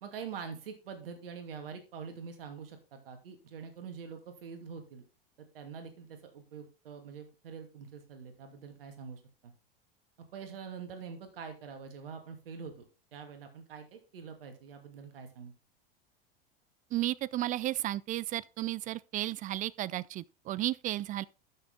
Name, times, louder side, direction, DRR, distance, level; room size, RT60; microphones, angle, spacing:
voice 1, 0.0-5.0 5.5-9.5 10.3-12.9 13.1-15.5, right 6 dB, 70° right, 2.6 m, -45 dB
voice 2, 16.9-21.2, right 15 dB, 30° right, 0.4 m, -33 dB
12.0 x 6.8 x 3.7 m
hypercardioid pair, 85°, 29 cm